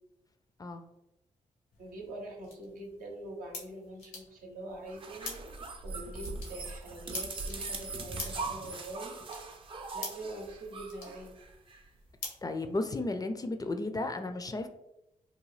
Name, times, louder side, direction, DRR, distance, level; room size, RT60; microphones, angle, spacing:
sound 1, 1.7-13.2, left 3 dB, 85° left, 0.8 m, -48 dB
voice 1, 1.8-5.4 5.8-9.2 9.9-11.3, right 1 dB, 80° right, 0 dB, 0.7 m, -44 dB
sound 2, 4.9-11.8, right 3 dB, 40° right, 0.5 m, -41 dB
voice 2, 12.4-14.7, left 2 dB, 25° left, 7 dB, 0.4 m, -34 dB
2.7 x 2.2 x 3.1 m, 0.90 s
supercardioid pair, 50°, 14 cm